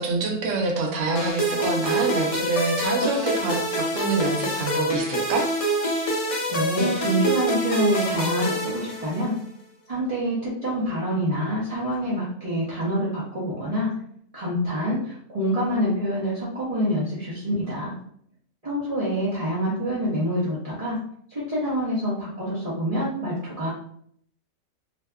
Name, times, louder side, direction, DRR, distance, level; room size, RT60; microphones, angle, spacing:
voice 1, 0.0-5.4, right 3 dB, 75° right, 1 dB, 0.9 m, -26 dB
sound 1, 1.2-9.4, right 1 dB, 60° left, 0.3 m, -26 dB
voice 2, 6.5-9.3 9.9-13.9 14.3-17.9 18.6-21.0 21.3-23.7, equal, 35° right, -10 dB, 0.6 m, -26 dB
2.7 x 2.2 x 2.2 m, 0.65 s
omnidirectional pair, 1.4 m